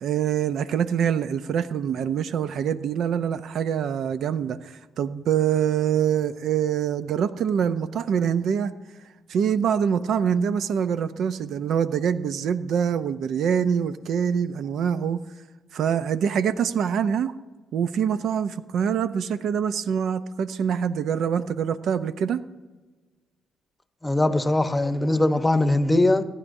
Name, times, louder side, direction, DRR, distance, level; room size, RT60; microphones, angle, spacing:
voice 1, 0.0-8.7 9.3-15.2 15.7-17.3 17.7-22.4, right 8 dB, 70° right, 12 dB, 0.5 m, -25 dB
voice 2, 24.0-26.2, left 1 dB, 15° left, 9 dB, 0.9 m, -21 dB
25.5 x 9.9 x 2.7 m, 1.3 s
cardioid pair, 90°, 0 cm